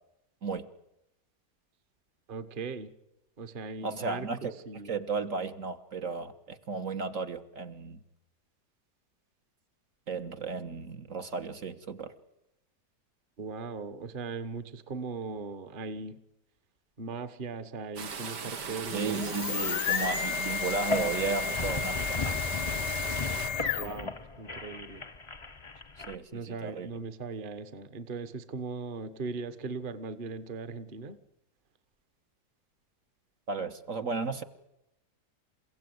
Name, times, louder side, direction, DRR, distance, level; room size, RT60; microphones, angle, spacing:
voice 1, 2.3-2.9 3.4-4.9 13.4-16.2 17.0-19.6 23.8-25.0 26.3-31.2, right 4 dB, 35° right, 11 dB, 1.3 m, -39 dB
voice 2, 3.8-4.5 4.9-8.0 10.1-12.1 18.9-22.4 26.1-26.9 33.5-34.4, right 4 dB, 55° right, 6 dB, 1.6 m, -34 dB
sound 1, 18.0-23.5, right 6 dB, 80° right, 2.3 m, -38 dB
sound 2, 18.8-24.1, left 8 dB, 85° left, 1.7 m, -33 dB
sound 3, 20.7-26.1, left 4 dB, 25° left, 0.8 m, -36 dB
29.0 x 16.5 x 9.5 m, 0.88 s
omnidirectional pair, 1.8 m